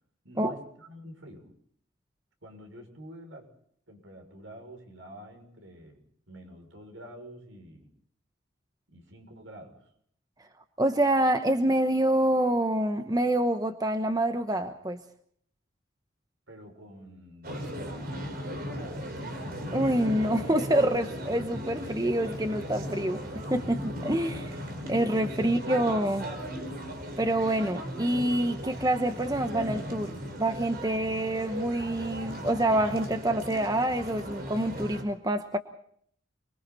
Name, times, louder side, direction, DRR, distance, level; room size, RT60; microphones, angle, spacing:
voice 1, 0.2-1.5 2.4-3.5 3.9-6.0 6.3-7.9 8.9-9.9 16.5-18.9, right 1 dB, 75° right, 4 dB, 6.5 m, -48 dB
voice 2, 10.8-15.0 19.7-23.2 23.5-24.6 24.8-26.3 27.2-35.6, right 1 dB, 20° right, 8 dB, 1.1 m, -27 dB
sound 1, 17.4-35.0, equal, 50° right, 4.9 m, -37 dB
29.5 x 22.5 x 4.2 m, 0.64 s
head